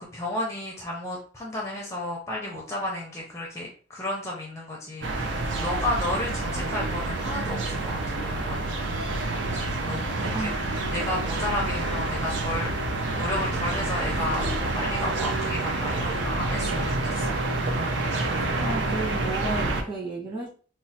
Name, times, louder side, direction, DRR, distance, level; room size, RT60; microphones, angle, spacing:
voice 1, 0.0-8.8 9.6-10.5 10.9-17.4, left 1 dB, 15° left, -1 dB, 0.4 m, -33 dB
sound 1, 5.0-19.8, right 2 dB, 75° right, 0.5 m, -28 dB
voice 2, 18.6-20.5, right 2 dB, 25° right, -6 dB, 1.2 m, -32 dB
3.0 x 2.1 x 2.7 m, 0.41 s
head